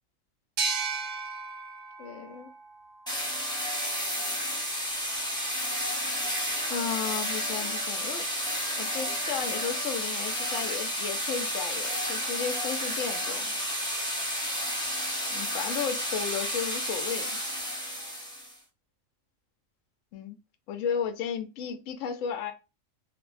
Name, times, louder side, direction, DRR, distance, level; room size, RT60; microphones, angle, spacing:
sound 1, 0.6-3.9, right 4 dB, 75° right, 1.0 m, -35 dB
voice 1, 2.0-2.5 6.7-8.3 8.8-13.6 15.3-17.4 20.1-20.4 20.7-22.5, left 7 dB, 75° left, 0.9 m, -34 dB
sound 2, 3.1-18.5, equal, 5° left, 0.6 m, -31 dB
2.5 x 2.1 x 3.0 m
omnidirectional pair, 1.3 m